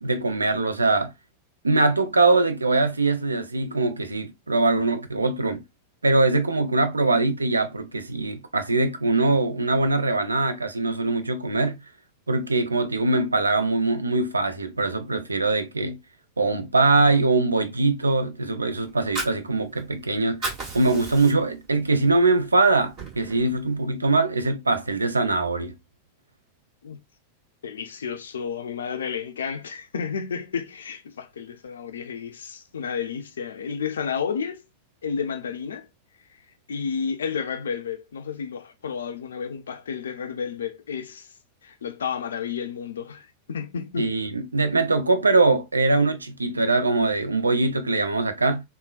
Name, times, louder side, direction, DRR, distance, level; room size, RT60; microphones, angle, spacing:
voice 1, 0.0-1.1 1.6-5.6 6.0-11.8 12.3-16.0 16.4-20.4 20.7-25.7 44.0-48.6, right 3 dB, 80° right, 0.4 m, -22 dB
Fire, 18.9-20.0 20.3-21.6 22.1-22.2 22.6-23.6, right 3 dB, 40° right, 1.9 m, -34 dB
voice 2, 27.6-34.6 35.0-35.9 36.7-41.3 41.6-44.1, left 6 dB, 65° left, 0.4 m, -31 dB
3.6 x 2.1 x 2.3 m
figure-of-eight pair, 90°, 0 cm